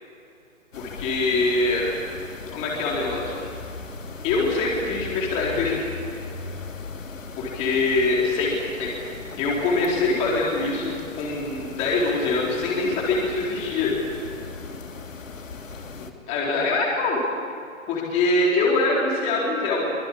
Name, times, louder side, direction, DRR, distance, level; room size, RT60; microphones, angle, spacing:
Ambience Room, 0.7-16.1, left 4 dB, 75° left, 2.7 m, -38 dB
voice 1, 0.8-1.9 2.5-3.4 4.2-5.8 7.4-8.9 9.4-14.0 16.3-17.2 17.9-19.9, left 3 dB, 15° left, -3 dB, 4.1 m, -23 dB
24.5 x 22.0 x 8.6 m, 2.4 s
hypercardioid pair, 160°, 39 cm